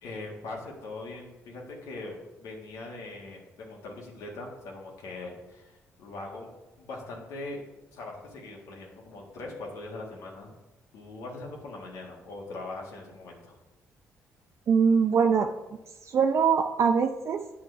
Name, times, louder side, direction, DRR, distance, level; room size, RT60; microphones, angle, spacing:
voice 1, 0.0-6.5 6.8-7.6 7.9-10.5 10.9-13.5, left 2 dB, 80° left, -1 dB, 1.7 m, -41 dB
voice 2, 14.7-15.5 16.0-17.4, right 6 dB, 55° right, 5 dB, 0.5 m, -23 dB
8.7 x 6.2 x 3.3 m, 1.0 s
supercardioid pair, 70°, 6 cm